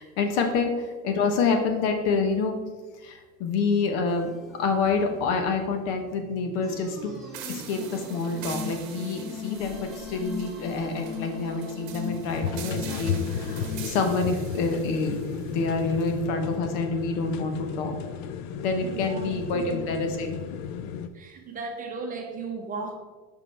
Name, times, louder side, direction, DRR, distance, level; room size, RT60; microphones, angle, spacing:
voice 1, 0.0-2.6 3.0-4.3 4.6-7.1 7.5-17.9 18.6-20.4, left 4 dB, 80° left, 5 dB, 1.1 m, -27 dB
sound 1, 4.1-13.9, left 4 dB, ahead, 1.3 m, -39 dB
sound 2, 7.3-16.2, right 8 dB, 55° right, 1.0 m, -44 dB
sound 3, 12.3-21.1, left 8 dB, 60° left, 0.5 m, -34 dB
voice 2, 18.8-19.4 21.1-23.0, right 4 dB, 25° right, 3 dB, 0.8 m, -35 dB
5.3 x 5.2 x 4.4 m, 1.3 s
cardioid pair, 150°, 34 cm